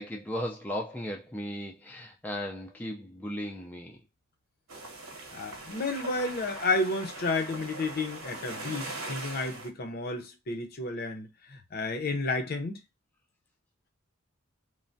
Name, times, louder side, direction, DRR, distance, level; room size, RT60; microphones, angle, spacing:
voice 1, 0.0-4.0, equal, 10° left, 0.4 m, -36 dB
sound 1, 4.7-9.7, right 2 dB, 85° right, 1.0 m, -41 dB
voice 2, 5.3-12.8, left 3 dB, 50° left, 0.6 m, -31 dB
3.2 x 2.1 x 2.5 m
head